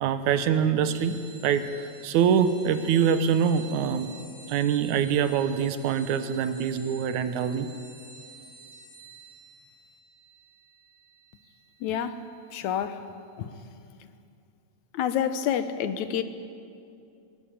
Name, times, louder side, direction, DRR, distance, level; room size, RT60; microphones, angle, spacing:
voice 1, 0.0-4.1 4.5-7.7, right 7 dB, 80° right, 11 dB, 2.4 m, -24 dB
sound 1, 0.8-12.9, right 3 dB, 45° left, 5.3 m, -50 dB
voice 2, 11.8-12.2 12.5-13.0 13.4-13.5 14.9-16.2, left 9 dB, 80° left, 11 dB, 2.3 m, -28 dB
21.0 x 17.5 x 8.8 m, 2.5 s
omnidirectional pair, 3.4 m